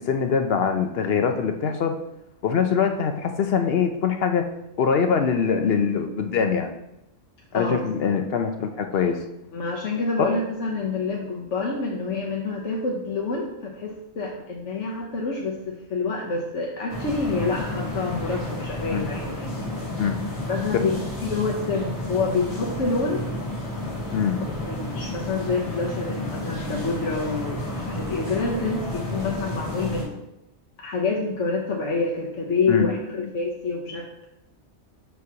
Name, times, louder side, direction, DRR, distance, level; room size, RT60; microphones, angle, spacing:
voice 1, 0.1-2.0 2.4-4.5 4.8-6.7 7.5-9.2 10.2-10.4 18.9-19.1 20.0-20.2 20.7-20.8 24.1-24.4 32.7-32.9 33.2-33.3, left 6 dB, 65° left, 6 dB, 0.8 m, -23 dB
voice 2, 7.5-8.1 9.5-19.5 20.5-23.3 24.6-30.2 30.8-34.1, left 4 dB, 90° left, -2 dB, 1.2 m, -27 dB
sound 1, 16.9-30.0, left 1 dB, 40° left, 2.6 m, -31 dB
7.5 x 6.1 x 2.8 m, 0.85 s
omnidirectional pair, 1.2 m